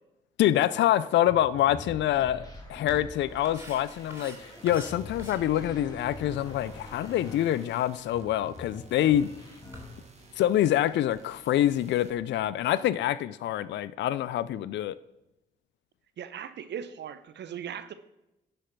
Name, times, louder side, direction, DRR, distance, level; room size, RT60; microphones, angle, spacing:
voice 1, 0.4-9.3 10.4-15.0, left 12 dB, 65° left, 0.4 m, -26 dB
sound 1, 1.3-10.4 10.7-11.6, left 2 dB, 20° left, 2.8 m, -45 dB
sound 2, 2.8-11.3, right 1 dB, 10° right, 3.5 m, -52 dB
sound 3, 3.3-12.1, right 4 dB, 35° right, 1.7 m, -57 dB
voice 2, 16.2-17.9, right 8 dB, 65° right, 0.8 m, -38 dB
11.0 x 5.2 x 6.0 m
supercardioid pair, 50°, 20 cm